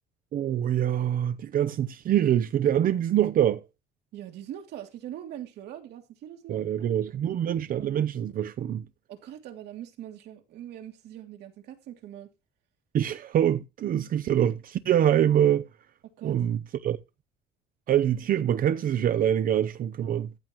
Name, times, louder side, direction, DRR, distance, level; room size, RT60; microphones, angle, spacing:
voice 1, 0.3-3.6 6.5-8.8 12.9-15.6 16.2-17.0 17.9-20.3, right 10 dB, 55° right, 0.8 m, -25 dB
voice 2, 4.1-6.6 9.1-12.3 16.0-16.4, right 11 dB, 75° right, 2.9 m, -42 dB
14.5 x 9.0 x 3.1 m
cardioid pair, 110°, 17 cm